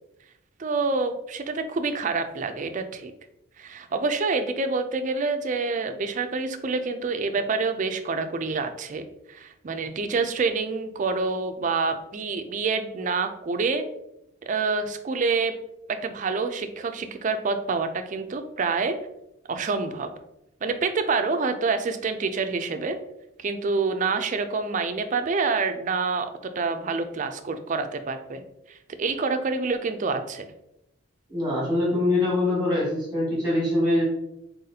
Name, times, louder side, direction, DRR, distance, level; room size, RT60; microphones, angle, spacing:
voice 1, 0.6-3.1 3.6-13.8 14.5-15.5 15.9-19.0 19.5-20.1 20.6-23.0 23.4-26.3 26.6-28.4 28.7-30.5, right 4 dB, 40° right, 8 dB, 0.4 m, -27 dB
voice 2, 31.3-34.0, left 1 dB, ahead, -6 dB, 1.3 m, -23 dB
4.0 x 4.0 x 2.7 m, 0.84 s
head